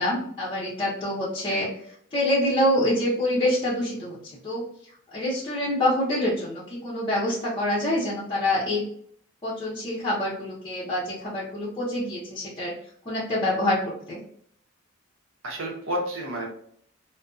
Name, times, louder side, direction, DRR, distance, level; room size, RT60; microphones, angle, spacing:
voice 1, 0.0-1.7 2.1-4.2 4.4-4.6 5.1-8.8 9.4-12.7 13.1-14.2, left 1 dB, 25° left, -9 dB, 0.6 m, -26 dB
voice 2, 15.4-16.5, equal, 75° right, 0 dB, 0.8 m, -31 dB
2.6 x 2.2 x 2.3 m, 0.64 s
head